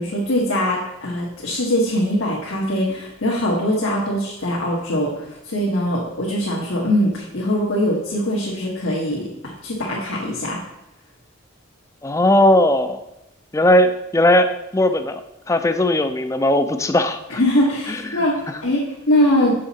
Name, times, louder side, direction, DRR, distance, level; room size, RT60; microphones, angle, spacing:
voice 1, 0.0-10.6 17.4-19.5, left 1 dB, 85° left, -6 dB, 1.6 m, -22 dB
voice 2, 12.0-13.0 13.5-15.2 15.5-17.2 17.9-18.2, left 1 dB, 15° left, 9 dB, 0.4 m, -18 dB
7.4 x 6.3 x 4.2 m, 0.90 s
head